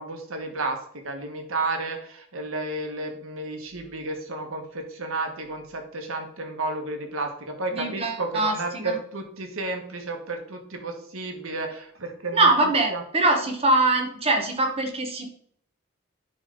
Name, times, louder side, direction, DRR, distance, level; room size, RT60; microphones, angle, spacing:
voice 1, 0.0-12.5 12.9-13.0, right 2 dB, 85° right, 4 dB, 1.3 m, -32 dB
voice 2, 7.7-9.0 12.3-15.3, right 2 dB, 30° right, 3 dB, 1.0 m, -23 dB
10.0 x 3.3 x 3.8 m, 0.62 s
head